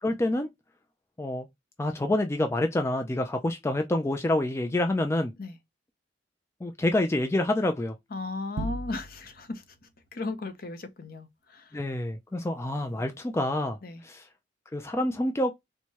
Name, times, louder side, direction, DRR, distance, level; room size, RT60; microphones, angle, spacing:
voice 1, 0.0-0.5 1.2-1.5 1.8-5.3 6.6-7.9 11.7-13.8 14.0-14.2 14.7-15.5, left 1 dB, 15° left, 0.3 m, -27 dB
voice 2, 8.1-9.6 10.1-11.7 13.8-14.0, left 3 dB, 50° left, 0.7 m, -36 dB
sound 1, 8.6-9.5, right 1 dB, 75° right, 0.5 m, -35 dB
4.5 x 2.2 x 2.8 m
head